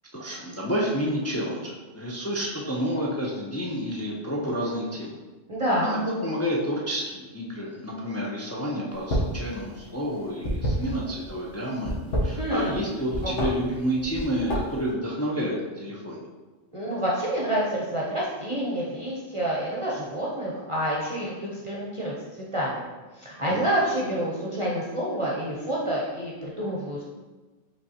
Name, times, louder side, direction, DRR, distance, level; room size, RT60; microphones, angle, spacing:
voice 1, 0.1-5.1 5.8-11.9 12.2-16.2 23.5-23.6, equal, 25° left, -4 dB, 0.3 m, -29 dB
voice 2, 5.5-6.0 12.4-12.8 16.7-22.1 22.5-22.8 23.1-27.0, right 1 dB, 35° right, -6 dB, 0.7 m, -28 dB
sound 1, 9.0-9.4 9.7-11.3 11.8-12.8 13.1-13.5 14.0-14.8, equal, 85° left, 1.4 m, -27 dB
5.1 x 3.5 x 2.8 m, 1.2 s
omnidirectional pair, 1.2 m